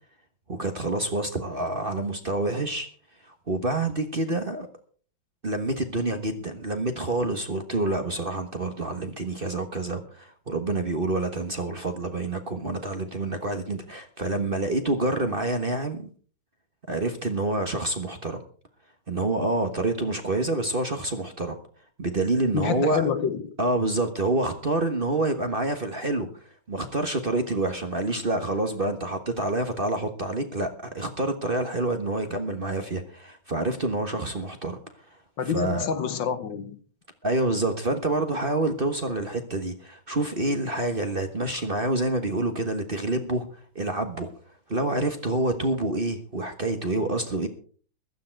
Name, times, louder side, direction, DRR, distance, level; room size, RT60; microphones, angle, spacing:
voice 1, 0.5-2.9 3.2-4.7 5.4-16.1 16.9-18.4 19.1-21.6 22.0-23.1 23.6-34.8 35.1-35.2 35.4-35.9 37.2-44.3 44.7-47.5, right 2 dB, 30° right, 1.3 m, -27 dB
voice 2, 22.5-23.5 35.4-36.8, left 7 dB, 65° left, 1.7 m, -27 dB
15.5 x 12.5 x 4.6 m
omnidirectional pair, 2.2 m